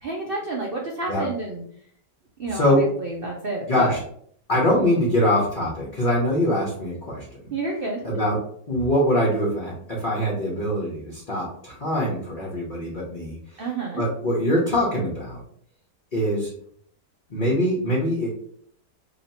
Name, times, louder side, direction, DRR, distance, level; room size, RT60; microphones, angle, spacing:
voice 1, 0.0-1.6 2.4-3.9 7.5-8.1 13.6-14.0, right 2 dB, 85° right, -1 dB, 0.5 m, -29 dB
voice 2, 2.5-2.8 3.7-4.0 4.5-7.5 8.0-13.6 14.0-15.4 16.1-16.5 17.3-18.3, equal, 40° left, -5 dB, 0.8 m, -23 dB
3.0 x 2.8 x 4.2 m, 0.63 s
omnidirectional pair, 1.8 m